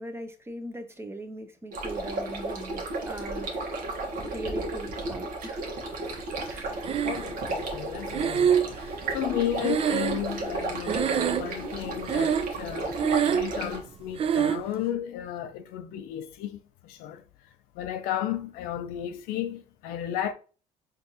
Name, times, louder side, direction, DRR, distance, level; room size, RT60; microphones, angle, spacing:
voice 1, 0.0-3.8 4.2-5.6 6.5-6.9 9.3-9.4, right 1 dB, 15° right, 0.8 m, -40 dB
sound 1, 1.7-13.8, right 2 dB, 65° right, 1.2 m, -34 dB
Breathing, 6.8-7.6 8.1-10.6 10.8-11.7 12.0-12.6 12.9-13.6 14.2-14.7, right 8 dB, 40° right, 0.4 m, -25 dB
voice 2, 7.0-12.9 13.2-17.2 17.7-20.3, left 11 dB, 80° left, 0.5 m, -33 dB
4.4 x 2.6 x 2.8 m
supercardioid pair, 80°, 15 cm